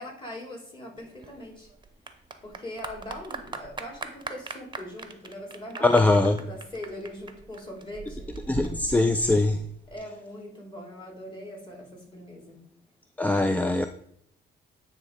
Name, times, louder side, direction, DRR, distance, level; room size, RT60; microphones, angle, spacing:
voice 1, 0.0-1.7 2.4-8.3 9.9-12.6, left 1 dB, 25° left, -1 dB, 2.8 m, -41 dB
Clapping / Applause, 1.0-10.0, right 4 dB, 25° right, 0.8 m, -40 dB
voice 2, 5.8-6.3 8.5-9.6 13.2-13.9, left 2 dB, 10° left, 7 dB, 0.4 m, -21 dB
9.4 x 3.2 x 5.0 m, 0.70 s
cardioid pair, 90°, 20 cm